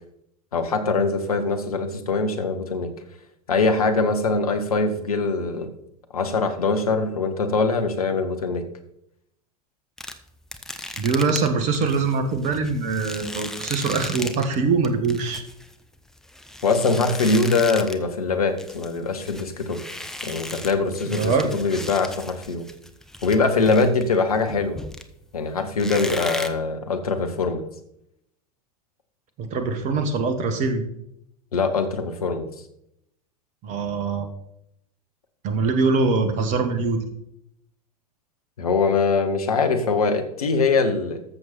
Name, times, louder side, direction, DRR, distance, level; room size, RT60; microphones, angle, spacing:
voice 1, 0.5-2.9 3.5-5.7 6.1-8.6 16.6-19.8 20.2-22.7 23.2-24.8 25.3-27.6 31.5-32.5 38.6-41.2, left 4 dB, 70° left, 6 dB, 1.6 m, -22 dB
sound 1, 10.0-14.6 14.8-18.1 18.4-25.3 25.8-26.5, left 1 dB, ahead, 0.9 m, -36 dB
voice 2, 11.0-15.4 21.0-21.6 29.4-30.9 33.6-34.3 35.4-37.0, right 4 dB, 40° right, 8 dB, 1.8 m, -23 dB
14.0 x 6.9 x 4.4 m, 0.77 s
figure-of-eight pair, 85°, 19 cm